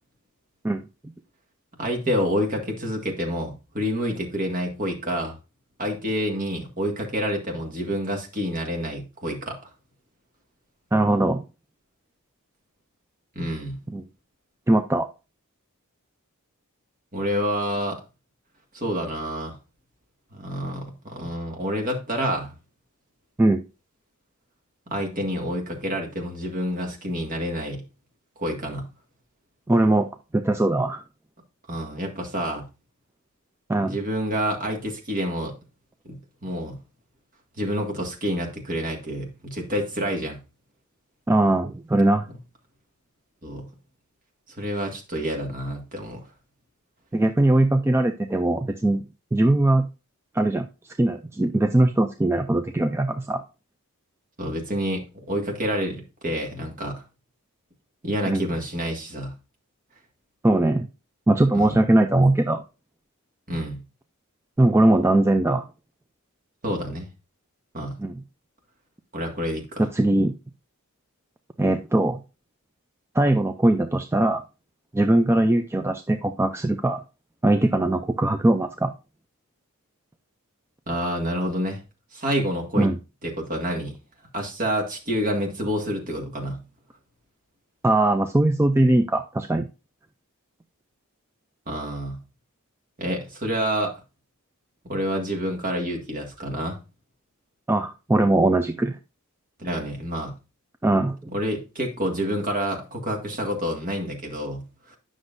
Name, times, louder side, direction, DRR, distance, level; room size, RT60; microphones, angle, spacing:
voice 1, 1.8-5.4 5.8-9.6 13.4-13.8 17.1-18.0 18.7-19.6 20.3-22.5 24.9-27.8 28.4-28.9 31.7-32.7 33.8-35.6 36.0-36.8 37.6-40.4 43.4-43.7 44.6-46.2 54.4-57.0 58.0-59.3 61.5-61.8 63.5-63.8 66.6-67.1 67.7-68.0 69.1-69.9 80.9-81.8 82.1-82.9 83.2-83.9 84.3-86.6 91.7-92.2 93.0-94.0 94.8-96.8 99.6-100.3 101.3-105.0, equal, 40° right, 1 dB, 1.9 m, -28 dB
voice 2, 10.9-11.4 13.9-14.0 14.7-15.1 23.4-23.6 29.7-30.1 30.3-31.0 33.7-34.0 41.3-42.3 47.1-49.0 49.3-49.9 50.3-53.4 58.2-58.4 60.4-60.9 61.3-62.6 64.6-65.6 68.0-68.2 69.8-70.3 71.6-72.2 73.1-74.4 74.9-77.0 77.4-78.9 82.8-83.0 87.8-89.7 97.7-99.0 100.8-101.3, right 1 dB, 10° right, 7 dB, 0.3 m, -20 dB
9.6 x 6.2 x 2.6 m, 0.30 s
head